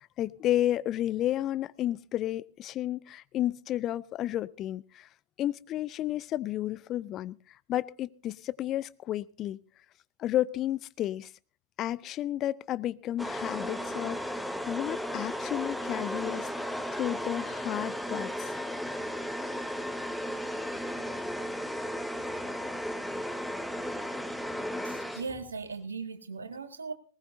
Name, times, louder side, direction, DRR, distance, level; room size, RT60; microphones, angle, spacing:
voice 1, 0.2-5.1 5.4-7.4 7.7-9.6 10.2-11.3 11.8-14.4 14.7-18.5, left 13 dB, 35° left, 18 dB, 0.6 m, -32 dB
sound 1, 13.2-25.6, equal, ahead, 1.2 m, -35 dB
voice 2, 24.8-26.9, right 4 dB, 75° right, 7 dB, 2.0 m, -38 dB
19.5 x 19.0 x 2.7 m, 0.38 s
figure-of-eight pair, 90°, 0 cm